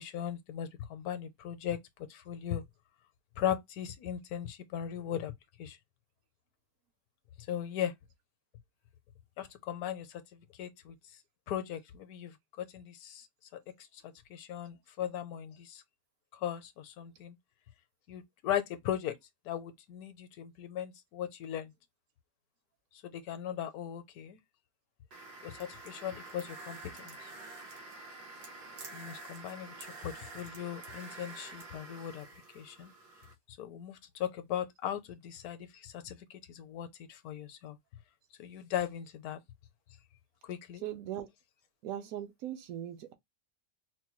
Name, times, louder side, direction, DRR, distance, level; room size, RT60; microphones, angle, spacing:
voice 1, 0.0-2.6 3.4-5.3 5.6-5.8 7.4-7.9 9.4-11.2 11.5-13.3 13.5-15.8 16.3-17.4 18.1-19.2 19.4-21.7 22.9-24.4 25.4-27.3 28.9-32.9 33.5-37.8 38.4-39.4 40.4-40.8, left 10 dB, 75° left, 1.1 m, -38 dB
sound 1, 25.1-33.3, right 3 dB, 85° right, 1.6 m, -48 dB
voice 2, 40.8-41.3 41.8-43.1, right 11 dB, 70° right, 0.9 m, -39 dB
4.4 x 2.1 x 3.0 m
omnidirectional pair, 1.6 m